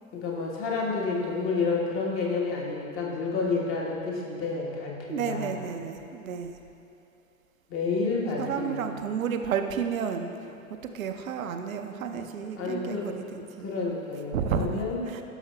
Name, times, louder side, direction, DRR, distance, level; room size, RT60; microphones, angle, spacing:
voice 1, 0.1-5.5 7.7-8.9 12.1-13.1 13.6-15.0, left 4 dB, 30° left, -3 dB, 1.3 m, -30 dB
voice 2, 5.1-6.6 8.4-13.7 14.3-15.2, right 7 dB, 70° right, 6 dB, 0.6 m, -32 dB
12.0 x 6.2 x 2.3 m, 2.8 s
figure-of-eight pair, 85°, 43 cm